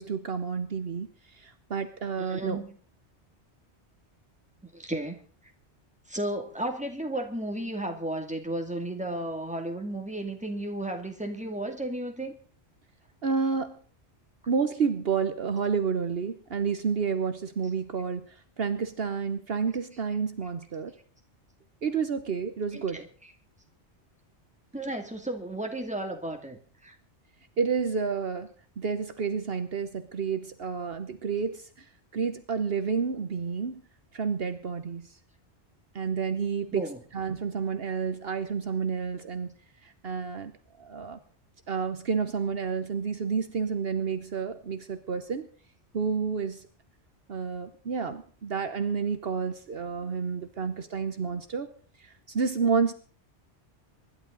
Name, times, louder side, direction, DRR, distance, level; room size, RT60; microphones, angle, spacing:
voice 1, 0.0-2.6 13.2-13.8 14.5-20.9 21.8-23.0 27.6-28.5 28.8-31.9 32.1-33.8 34.1-35.1 35.9-39.5 39.8-40.5 40.8-41.2 41.7-45.5 45.9-46.7 47.3-51.7 52.0-52.9, right 5 dB, 60° right, 10 dB, 1.2 m, -30 dB
voice 2, 2.2-2.7 4.7-5.2 6.1-12.3 22.7-23.3 24.7-27.0 36.7-37.0, right 1 dB, 5° right, 4 dB, 2.3 m, -34 dB
24.5 x 11.5 x 3.9 m, 0.43 s
omnidirectional pair, 1.2 m